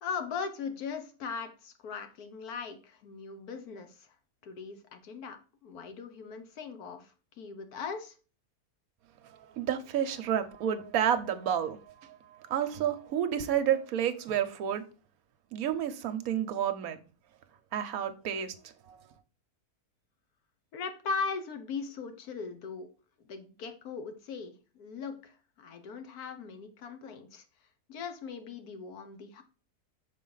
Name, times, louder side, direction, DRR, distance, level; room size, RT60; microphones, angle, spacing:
voice 1, 0.0-4.1 4.4-8.1 20.7-22.9 23.2-27.4 27.9-29.4, left 5 dB, 70° left, 1.4 m, -39 dB
voice 2, 9.2-12.2 12.5-14.8 15.5-17.0 17.7-18.5 18.9-19.0, right 9 dB, 70° right, 1.1 m, -30 dB
6.2 x 4.1 x 3.9 m
omnidirectional pair, 1.7 m